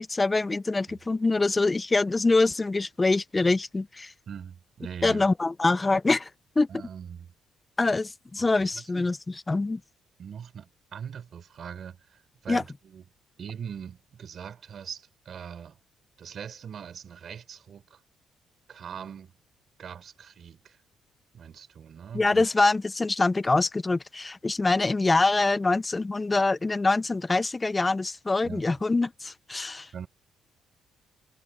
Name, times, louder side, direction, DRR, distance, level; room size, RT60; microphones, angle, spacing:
voice 1, 0.0-4.1 5.0-6.3 6.6-6.7 7.8-9.8 12.5-12.6 22.1-30.0, left 3 dB, 25° left, 0.8 m, -24 dB
voice 2, 4.3-5.3 6.7-7.3 8.4-9.1 10.2-13.0 13.4-15.8 16.2-18.0 18.7-19.3 19.8-20.8 21.3-22.5 28.4-28.7 29.9-30.1, right 7 dB, 60° right, 5.4 m, -41 dB
supercardioid pair, 70°, 0 cm